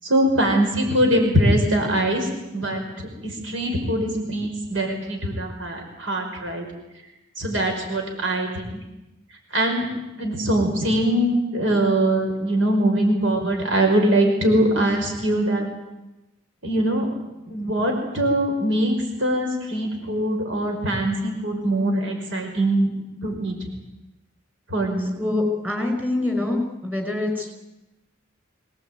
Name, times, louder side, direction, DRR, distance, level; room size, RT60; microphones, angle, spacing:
voice 1, 0.0-6.7 7.4-8.8 9.5-9.9 10.2-15.7 16.6-17.1 17.5-22.9 23.2-23.7 24.7-25.2, right 1 dB, 80° right, 3 dB, 5.6 m, -22 dB
voice 2, 25.2-27.5, left 2 dB, 10° right, 4 dB, 5.4 m, -25 dB
24.0 x 18.5 x 9.4 m, 0.97 s
head